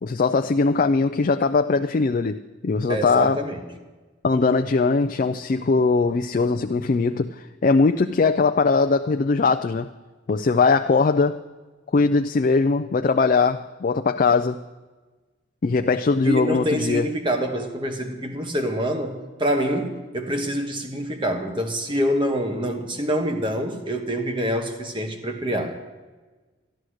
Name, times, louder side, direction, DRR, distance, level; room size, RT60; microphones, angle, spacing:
voice 1, 0.0-3.5 4.2-9.9 10.3-11.4 11.9-14.6 15.6-17.1, left 4 dB, 40° left, 6 dB, 0.3 m, -20 dB
voice 2, 2.9-3.6 16.2-25.9, equal, 25° right, 5 dB, 1.3 m, -26 dB
13.0 x 11.5 x 6.3 m, 1.3 s
head